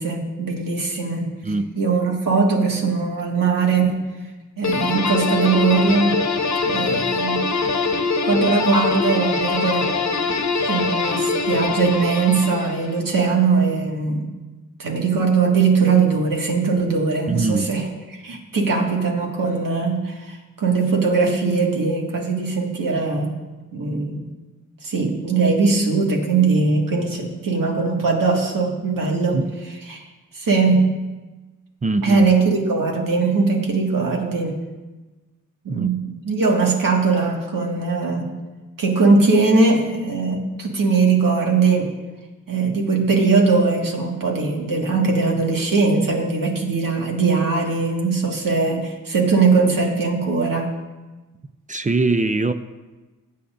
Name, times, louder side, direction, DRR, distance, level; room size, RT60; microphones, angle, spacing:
voice 1, 0.0-1.3 1.8-4.0 4.6-6.2 6.7-7.7 8.2-9.9 10.7-14.3 14.8-23.3 23.7-24.3 24.8-30.1 30.3-30.9 32.0-34.6 35.6-38.3 38.8-41.9 42.5-50.7, right 4 dB, 85° right, 0 dB, 1.9 m, -20 dB
voice 2, 1.4-1.8 17.3-17.7 29.3-29.5 31.8-32.3 35.7-35.9 51.7-52.5, right 3 dB, 25° right, 10 dB, 0.4 m, -22 dB
sound 1, 4.6-13.0, left 4 dB, 55° left, 1.0 m, -23 dB
20.0 x 8.5 x 2.6 m, 1.2 s
wide cardioid pair, 100°, 32 cm